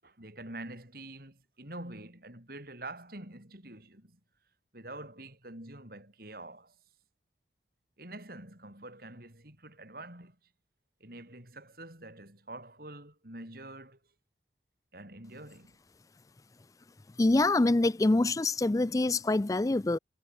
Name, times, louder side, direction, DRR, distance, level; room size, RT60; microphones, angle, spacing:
voice 1, 0.0-4.2 4.7-6.8 8.0-10.4 11.0-14.0 14.9-15.8, right 2 dB, 55° right, 7.2 m, -46 dB
voice 2, 17.2-20.0, left 2 dB, 20° left, 0.4 m, -25 dB
head